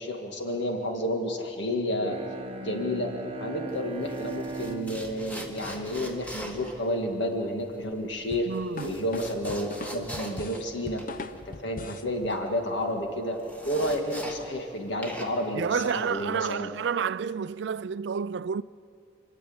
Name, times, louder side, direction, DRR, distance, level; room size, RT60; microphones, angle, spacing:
voice 1, 0.0-2.2 2.6-3.1 3.4-8.5 8.8-11.0 11.5-13.4 13.6-16.7, equal, 65° left, 2.1 m, -30 dB
Bowed string instrument, 1.9-6.8, right 3 dB, 30° right, 0.9 m, -40 dB
sound 1, 3.7-14.7 15.0-16.5, equal, 10° left, 1.8 m, -42 dB
sound 2, 8.3-12.1, left 3 dB, 45° left, 0.7 m, -40 dB
voice 2, 8.5-9.0 15.5-18.6, right 6 dB, 65° right, 0.4 m, -30 dB
28.5 x 10.5 x 8.7 m
head